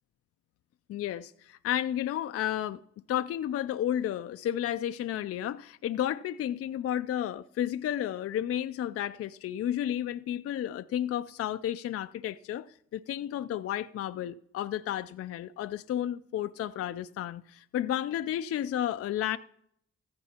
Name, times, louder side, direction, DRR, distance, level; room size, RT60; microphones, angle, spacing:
voice 1, 0.9-2.8 3.1-12.7 12.9-19.4, left 11 dB, 50° left, 0.4 m, -32 dB
16.0 x 14.0 x 2.9 m
cardioid pair, 90°, 30 cm